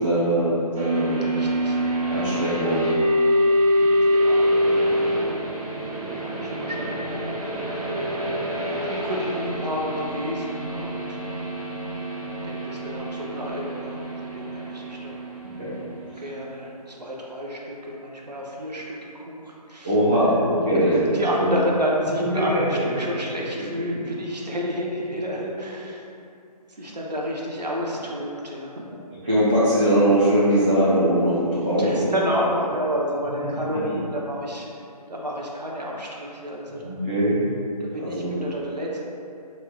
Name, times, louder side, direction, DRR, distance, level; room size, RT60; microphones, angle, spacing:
voice 1, 0.0-1.3 2.1-2.8 15.6-15.7 19.8-21.5 29.2-32.1 36.8-37.5 38.0-38.4, right 1 dB, 15° right, -12 dB, 0.3 m, -21 dB
sound 1, 0.7-16.5, equal, 65° right, 1.1 m, -25 dB
voice 2, 1.2-1.8 2.1-2.4 3.7-5.2 6.1-7.0 8.6-11.2 12.4-14.0 14.3-15.2 16.2-26.0 26.7-28.8 31.7-34.7 35.1-37.0 37.8-39.0, equal, 85° right, -3 dB, 0.8 m, -30 dB
5.3 x 3.0 x 2.3 m, 2.5 s
figure-of-eight pair, 150°, 20 cm